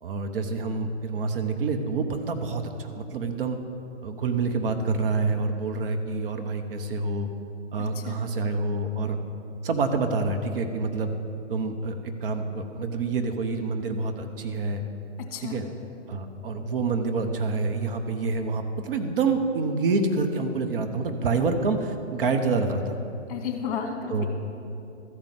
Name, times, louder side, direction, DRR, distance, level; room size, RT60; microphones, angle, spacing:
voice 1, 0.0-3.6 4.0-7.3 7.7-9.2 9.6-11.2 11.5-14.8 15.4-15.6 16.1-23.0 24.1-24.3, right 3 dB, 50° right, 6 dB, 0.9 m, -27 dB
voice 2, 7.8-8.2 15.3-15.6 23.3-24.3, left 7 dB, 45° left, 3 dB, 1.7 m, -33 dB
13.5 x 5.3 x 7.6 m, 2.8 s
hypercardioid pair, 140°, 37 cm